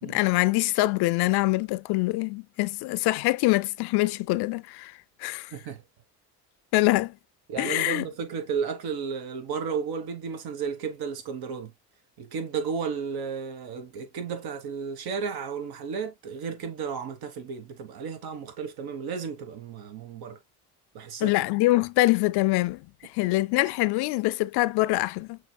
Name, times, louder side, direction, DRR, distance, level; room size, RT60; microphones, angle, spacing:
voice 1, 0.0-4.9 5.2-5.5 6.7-7.1 7.6-8.1 21.2-25.4, left 20 dB, 80° left, 0.5 m, -24 dB
voice 2, 5.5-5.8 7.5-11.7 12.2-20.4 20.9-21.4, right 6 dB, 70° right, 1.3 m, -33 dB
6.5 x 3.2 x 2.2 m
cardioid pair, 100°, 39 cm